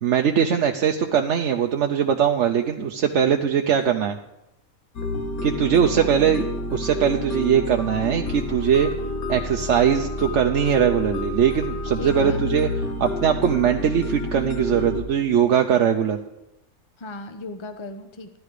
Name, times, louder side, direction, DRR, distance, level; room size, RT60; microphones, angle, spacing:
voice 1, 0.0-4.2 5.4-6.5 6.7-8.9 9.3-12.7 13.0-16.2, right 8 dB, 60° right, 3 dB, 1.0 m, -21 dB
sound 1, 5.0-15.0, left 1 dB, 85° left, 2.1 m, -29 dB
voice 2, 5.9-6.5 12.0-12.4 17.0-18.4, left 2 dB, 20° left, 8 dB, 1.0 m, -36 dB
15.5 x 12.5 x 5.0 m, 0.89 s
omnidirectional pair, 1.5 m